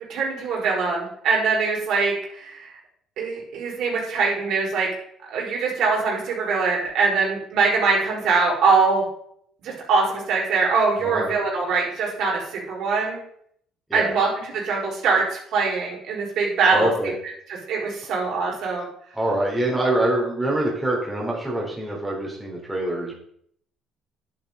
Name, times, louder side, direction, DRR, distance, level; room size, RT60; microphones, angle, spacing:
voice 1, 0.1-2.7 3.2-4.9 5.3-9.0 9.6-13.2 13.9-16.9 17.5-18.8, right 4 dB, 70° right, -3 dB, 4.8 m, -23 dB
voice 2, 16.7-17.1 19.1-23.2, right 1 dB, 10° right, -3 dB, 3.7 m, -25 dB
10.5 x 8.8 x 4.1 m, 0.67 s
cardioid pair, 110°, 0 cm